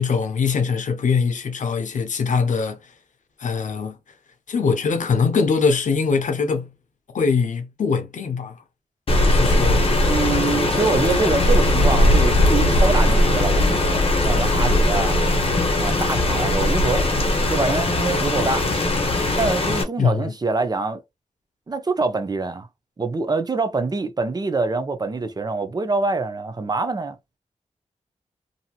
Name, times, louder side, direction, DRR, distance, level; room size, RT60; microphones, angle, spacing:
voice 1, 0.0-2.9 3.4-4.0 4.5-6.7 7.1-8.6 9.1-9.9 20.0-20.3, left 5 dB, 85° left, 0.6 m, -22 dB
Rain, 9.1-19.8, left 1 dB, 50° left, 0.8 m, -19 dB
voice 2, 10.1-15.2 15.8-17.1 17.5-18.6 19.4-21.0 21.7-22.7 23.0-27.2, right 3 dB, 30° right, 0.5 m, -25 dB
2.8 x 2.6 x 2.3 m
wide cardioid pair, 90°, 13 cm